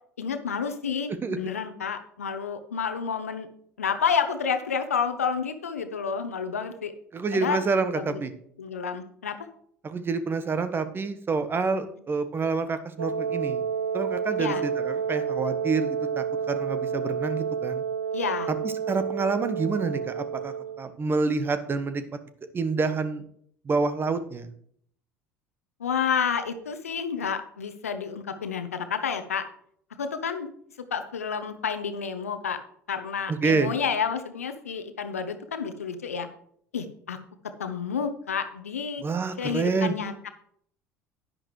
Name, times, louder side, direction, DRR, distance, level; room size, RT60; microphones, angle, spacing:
voice 1, 0.2-3.5 3.8-6.9 7.3-7.6 7.9-8.2 8.6-9.4 14.4-14.6 18.1-18.5 25.8-29.5 30.0-30.5 30.9-32.6 32.9-36.3 36.7-37.2 37.6-39.0 39.4-40.3, left 6 dB, 85° left, 9 dB, 0.9 m, -30 dB
voice 2, 7.1-8.3 9.8-13.6 13.9-17.8 18.6-22.0 22.5-23.2 23.6-24.5 33.3-33.7 39.0-40.0, right 4 dB, 30° right, 11 dB, 1.2 m, -28 dB
Wind instrument woodwind instrument, 13.0-20.8, right 7 dB, 85° right, 0.7 m, -30 dB
10.5 x 10.5 x 3.2 m, 0.65 s
figure-of-eight pair, 65°, 8 cm